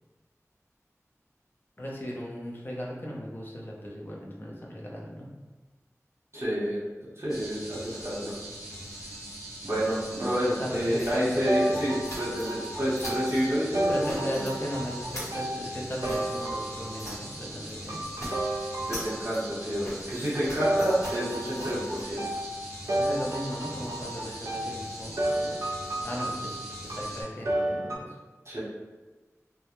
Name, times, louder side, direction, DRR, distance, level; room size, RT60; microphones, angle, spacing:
voice 1, 1.8-5.3 10.6-11.7 13.9-18.0 23.0-25.6 26.0-28.2, equal, 35° left, -4 dB, 0.6 m, -37 dB
voice 2, 6.3-8.3 9.6-14.1 18.8-22.2 28.4-28.6, equal, 55° right, -9 dB, 0.9 m, -29 dB
sound 1, 7.3-27.2, right 1 dB, 85° left, 0.8 m, -42 dB
sound 2, 11.0-12.7 12.9-13.5 13.8-14.6 14.9-17.4 17.6-17.8 18.0-22.0, equal, 60° left, 1.1 m, -43 dB
sound 3, 11.5-17.2 17.9-19.5 20.6-28.0, right 1 dB, 70° right, 0.5 m, -32 dB
2.3 x 2.1 x 2.9 m, 1.2 s
wide cardioid pair, 45°, 6 cm